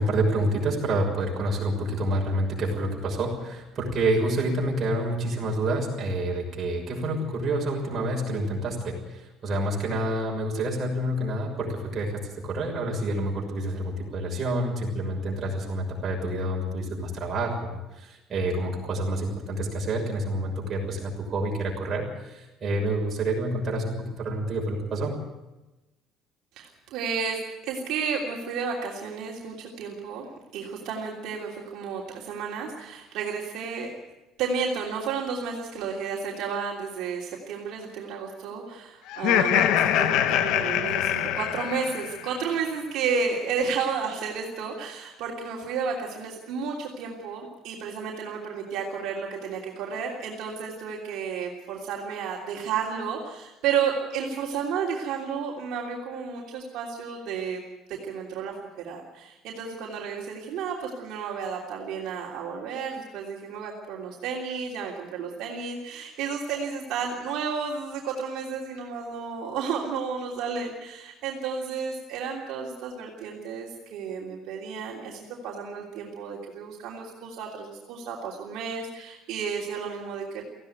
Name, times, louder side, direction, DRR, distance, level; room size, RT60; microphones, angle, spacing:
voice 1, 0.0-25.1, right 1 dB, 30° right, -1 dB, 6.2 m, -28 dB
voice 2, 26.6-30.3 30.5-33.9 34.4-57.6 57.9-80.4, right 6 dB, 65° right, -2 dB, 3.1 m, -32 dB
Laughter, 39.1-42.3, left 10 dB, 70° left, 1.3 m, -24 dB
18.5 x 15.5 x 9.4 m, 1.0 s
cardioid pair, 160°, 0 cm